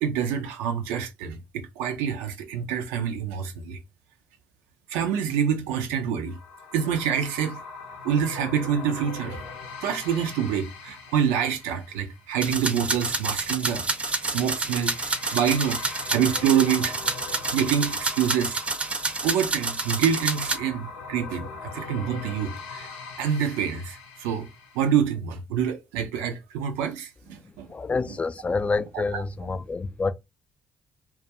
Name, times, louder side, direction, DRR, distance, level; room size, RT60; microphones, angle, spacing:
voice 1, 0.0-3.8 4.9-6.4 6.7-7.6 8.0-9.4 9.8-13.9 14.2-15.0 15.3-18.6 19.2-22.9 23.2-24.5 24.7-27.7 28.9-29.2, right 8 dB, 80° right, 0.4 m, -26 dB
sound 1, 6.3-24.9, left 4 dB, 85° left, 0.6 m, -42 dB
sound 2, 12.4-20.6, right 3 dB, 25° right, 0.5 m, -29 dB
voice 2, 27.7-30.1, left 4 dB, 30° left, 0.4 m, -27 dB
2.3 x 2.1 x 2.8 m
hypercardioid pair, 45°, 4 cm